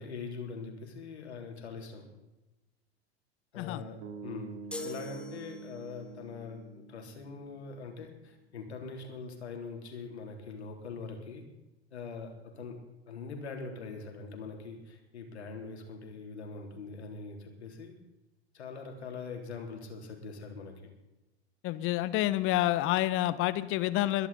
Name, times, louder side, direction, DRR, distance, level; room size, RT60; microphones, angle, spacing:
voice 1, 0.0-2.1 3.5-4.5 4.8-11.4 11.9-12.8 13.1-17.9 18.5-20.9, left 4 dB, 75° left, 3 dB, 3.3 m, -43 dB
sound 1, 4.0-8.2, right 4 dB, 40° right, 3.0 m, -47 dB
sound 2, 4.7-6.1, left 1 dB, 5° left, 1.9 m, -42 dB
voice 2, 21.6-24.3, left 15 dB, 40° left, 15 dB, 1.0 m, -28 dB
22.5 x 10.5 x 4.1 m, 1.0 s
figure-of-eight pair, 85°, 34 cm